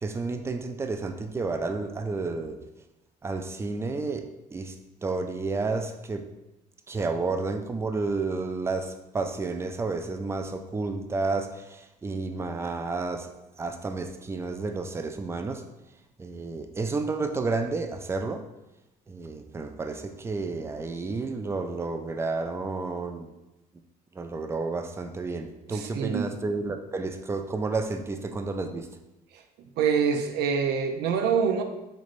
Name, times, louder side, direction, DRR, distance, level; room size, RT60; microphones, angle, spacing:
voice 1, 0.0-2.6 3.2-4.8 5.0-6.3 6.9-15.7 16.2-18.4 19.1-23.3 24.1-28.9, right 3 dB, 15° right, 6 dB, 0.3 m, -31 dB
voice 2, 25.7-26.3 29.8-31.6, right 6 dB, 75° right, 6 dB, 0.5 m, -25 dB
4.0 x 3.1 x 2.5 m, 0.95 s
cardioid pair, 110°, 17 cm